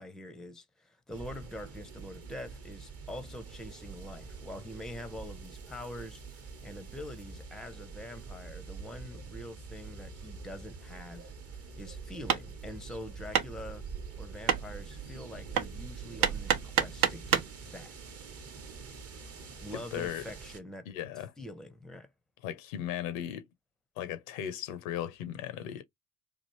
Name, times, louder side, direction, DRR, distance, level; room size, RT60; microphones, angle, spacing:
voice 1, 0.0-11.3 11.7-13.9 14.2-17.9 19.6-20.9 21.4-22.1, left 1 dB, ahead, 0.5 m, -45 dB
sound 1, 1.1-20.6, right 4 dB, 35° right, 0.9 m, -46 dB
Hammer, 11.6-17.6, right 8 dB, 65° right, 0.7 m, -31 dB
voice 2, 19.9-20.2 20.9-21.3 22.4-23.5 24.0-25.8, left 10 dB, 75° left, 0.6 m, -37 dB
3.1 x 2.5 x 2.9 m
hypercardioid pair, 55°, 40 cm